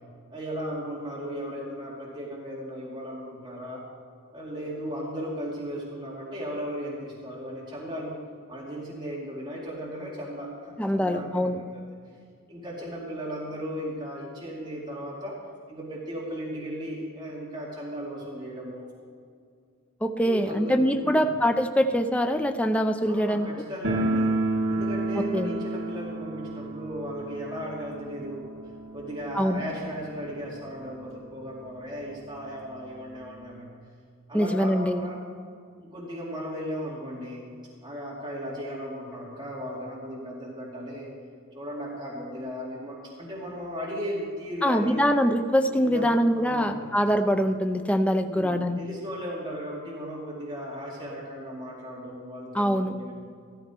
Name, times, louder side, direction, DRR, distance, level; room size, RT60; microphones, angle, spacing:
voice 1, 0.3-3.8 4.3-8.1 8.5-11.8 12.5-15.4 15.7-18.9 20.2-21.3 23.1-24.4 24.7-28.5 28.9-33.7 34.3-35.2 35.8-37.5 37.8-41.1 41.5-45.1 45.8-46.9 48.2-53.1, equal, 20° right, -5 dB, 2.5 m, -36 dB
voice 2, 10.8-11.6 20.0-23.5 25.3-25.5 29.4-29.6 34.3-35.1 44.6-48.8 52.5-52.9, equal, 5° left, 6 dB, 0.6 m, -24 dB
sound 1, 23.8-30.6 30.8-30.9 31.2-31.3 32.0-32.1 32.4-33.6, right 2 dB, 60° right, 1.7 m, -31 dB
14.0 x 14.0 x 4.5 m, 2.2 s
head